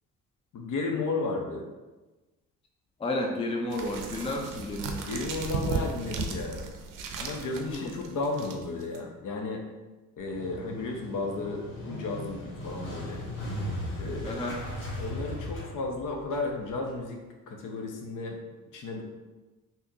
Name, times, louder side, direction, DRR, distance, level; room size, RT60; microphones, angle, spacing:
voice 1, 0.5-1.6 5.0-6.6 7.2-9.6 10.2-13.2 14.0-14.4 15.0-17.2 17.5-18.4 18.7-19.0, left 3 dB, 60° left, 2 dB, 0.7 m, -33 dB
voice 2, 3.0-5.0 7.7-7.9 14.2-14.6, left 1 dB, 15° left, 1 dB, 0.4 m, -32 dB
sound 1, 3.7-9.0, right 4 dB, 65° right, 0.5 m, -35 dB
Motorcycle, 10.2-17.0, equal, 85° left, 1.4 m, -37 dB
3.6 x 2.8 x 2.7 m, 1.2 s
cardioid pair, 85°, 35 cm